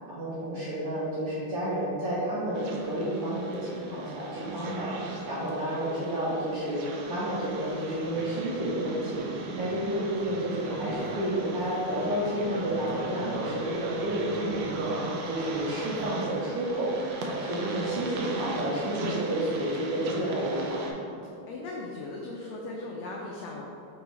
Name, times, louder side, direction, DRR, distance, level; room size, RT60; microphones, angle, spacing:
voice 1, 0.1-21.0, right 1 dB, 65° right, -9 dB, 1.4 m, -31 dB
sound 1, 2.5-20.9, right 3 dB, 85° right, 1.4 m, -38 dB
voice 2, 21.5-23.6, left 2 dB, 90° left, -2 dB, 1.5 m, -38 dB
6.7 x 3.0 x 4.6 m, 2.8 s
omnidirectional pair, 3.8 m